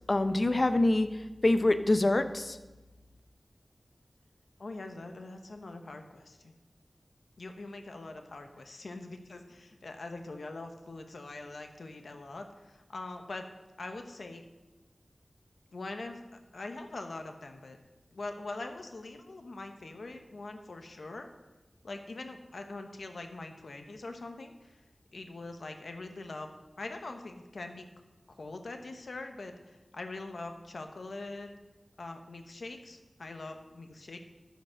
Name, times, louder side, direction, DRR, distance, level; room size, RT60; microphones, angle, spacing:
voice 1, 0.1-1.1 1.4-2.6, left 2 dB, 45° left, 9 dB, 0.7 m, -25 dB
voice 2, 4.6-6.5 7.4-13.5 13.8-14.4 15.7-16.2 16.5-17.8 18.1-21.3 21.8-24.8 25.1-26.5 26.8-27.8 28.3-31.5 32.0-34.2, left 2 dB, 90° left, 5 dB, 1.0 m, -43 dB
14.0 x 5.2 x 6.3 m, 1.1 s
wide cardioid pair, 70°, 0 cm